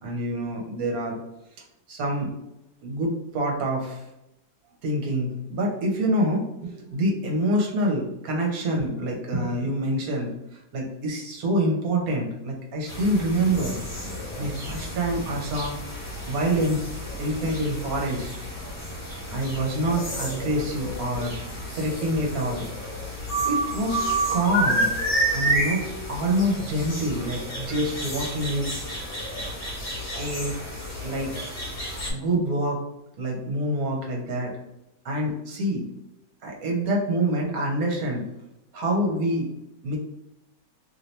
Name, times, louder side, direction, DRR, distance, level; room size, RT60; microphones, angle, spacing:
voice 1, 0.0-1.2 1.9-2.3 2.8-4.0 4.8-10.3 10.7-13.8 14.4-15.8 16.2-16.9 17.2-18.4 19.3-21.3 21.7-22.7 23.4-24.0 24.3-24.9 25.3-25.8 26.1-28.8 30.2-30.6 31.0-31.3 31.6-31.7 32.1-32.8 33.2-34.5 35.0-35.9 36.4-38.2 38.7-39.5 39.8-40.0, right 1 dB, 60° right, -1 dB, 1.2 m, -26 dB
sound 1, 12.9-32.1, right 1 dB, 40° left, 1.1 m, -30 dB
3.0 x 2.8 x 3.1 m, 0.89 s
omnidirectional pair, 1.8 m